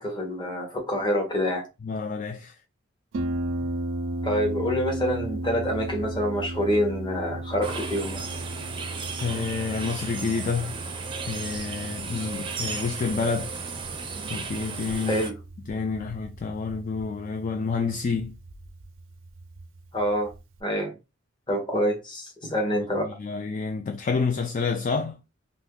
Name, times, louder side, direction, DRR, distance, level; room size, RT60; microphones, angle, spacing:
voice 1, 0.0-1.7 4.2-8.4 12.1-12.3 15.1-15.3 19.9-20.3 20.6-20.9 21.5-23.2, equal, 25° left, 1.0 m, -27 dB
voice 2, 1.8-2.6 3.6-3.7 9.2-10.7 11.3-13.5 14.3-15.2 15.7-18.4 22.9-25.2, left 4 dB, 40° left, 0.3 m, -29 dB
Harp, 3.1-20.6, right 1 dB, 80° right, 0.5 m, -36 dB
sound 1, 7.6-15.3, right 5 dB, 25° right, 0.5 m, -35 dB
2.6 x 2.6 x 3.6 m
head